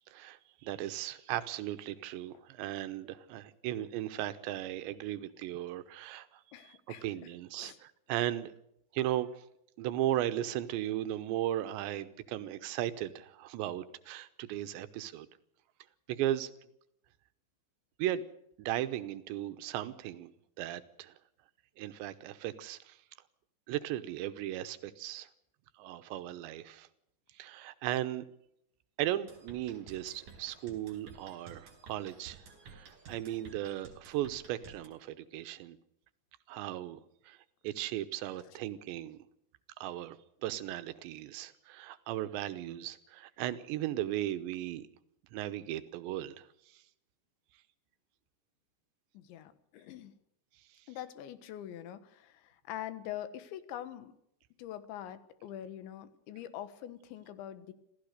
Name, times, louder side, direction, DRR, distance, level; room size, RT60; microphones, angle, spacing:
voice 1, 0.1-8.5 8.9-9.4 9.8-15.3 16.1-16.5 18.0-18.2 18.6-20.3 20.6-21.1 21.8-23.0 23.7-25.3 25.8-26.9 27.3-28.3 29.0-35.8 36.5-37.4 37.6-39.2 39.8-40.2 40.4-44.9 45.3-46.8, right 13 dB, 80° right, 12 dB, 3.2 m, -36 dB
voice 2, 6.5-7.3 7.6-7.8 49.2-50.1 50.9-54.1 54.6-57.7, left 11 dB, 85° left, 13 dB, 3.7 m, -44 dB
sound 1, 29.3-34.9, right 5 dB, 45° right, 5.3 m, -53 dB
27.0 x 16.0 x 6.6 m, 0.77 s
omnidirectional pair, 5.1 m